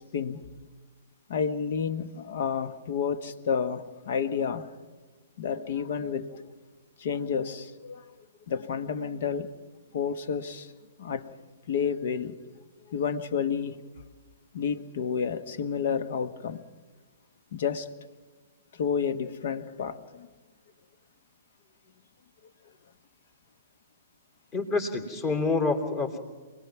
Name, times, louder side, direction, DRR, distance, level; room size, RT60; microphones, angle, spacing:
voice 1, 0.1-0.4 1.3-4.7 5.4-6.4 7.0-8.0 8.5-9.5 9.9-10.7 11.0-11.3 11.7-12.4 12.9-13.8 14.5-16.6 17.5-17.9 18.8-20.3, left 6 dB, 55° left, 1.3 m, -30 dB
voice 2, 24.5-26.2, left 3 dB, 30° left, 3.1 m, -27 dB
27.5 x 20.0 x 6.0 m
figure-of-eight pair, 120°, 0 cm